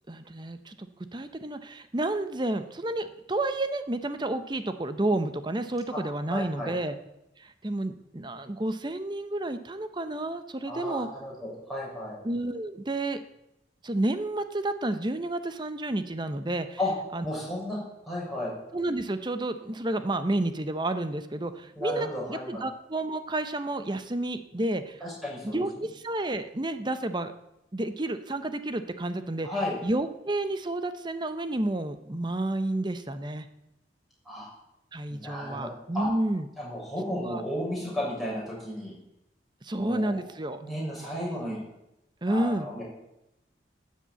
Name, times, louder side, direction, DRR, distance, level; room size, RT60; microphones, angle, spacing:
voice 1, 0.1-7.0 7.4-11.1 12.2-13.2 13.8-16.8 17.1-17.2 18.7-25.0 25.4-27.3 27.7-29.5 29.8-33.5 34.9-36.5 37.1-37.4 39.6-40.6 41.3-41.5 42.2-42.7, right 1 dB, 25° right, 10 dB, 0.7 m, -30 dB
voice 2, 6.3-6.7 10.7-12.2 16.8-16.9 17.2-17.8 18.1-18.5 21.8-22.6 25.0-25.6 29.4-29.8 34.2-34.5 35.1-35.7 35.9-36.1 36.6-38.9 39.8-40.2 40.6-41.6 42.3-42.8, left 1 dB, ahead, -5 dB, 6.3 m, -33 dB
13.0 x 7.5 x 8.2 m, 0.88 s
head